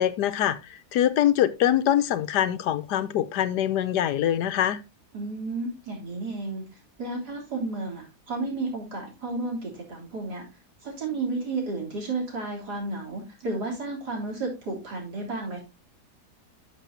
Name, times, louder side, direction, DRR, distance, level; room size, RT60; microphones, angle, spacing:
voice 1, 0.0-4.8, left 11 dB, 80° left, 1.3 m, -24 dB
voice 2, 5.1-6.6 7.0-10.4 10.8-15.6, right 3 dB, 70° right, 4.0 m, -32 dB
11.5 x 6.7 x 2.7 m
omnidirectional pair, 1.8 m